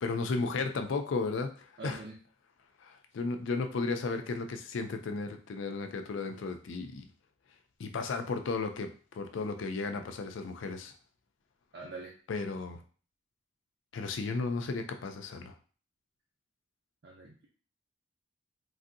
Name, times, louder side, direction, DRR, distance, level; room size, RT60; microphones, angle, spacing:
voice 1, 0.0-2.0 2.8-7.1 7.8-8.9 9.1-10.9 12.3-12.8 13.9-15.5, left 4 dB, 75° left, 7 dB, 0.4 m, -34 dB
voice 2, 1.8-2.2 11.7-12.2 17.0-17.4, right 3 dB, 60° right, -2 dB, 0.5 m, -44 dB
3.2 x 2.6 x 2.6 m, 0.41 s
head